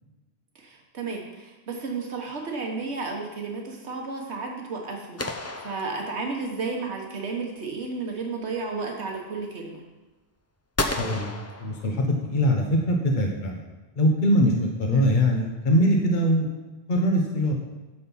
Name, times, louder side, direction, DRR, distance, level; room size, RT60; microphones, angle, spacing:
voice 1, 0.5-5.3 5.6-9.8 14.9-15.1, right 4 dB, 85° right, 1 dB, 1.5 m, -32 dB
sound 1, 5.2-6.6 10.8-12.4, left 2 dB, 20° left, 0.6 m, -32 dB
voice 2, 11.0-11.3 11.6-13.6 14.0-16.5 16.9-17.5, equal, 50° left, 1 dB, 1.3 m, -22 dB
9.9 x 6.6 x 5.5 m, 1.1 s
omnidirectional pair, 1.1 m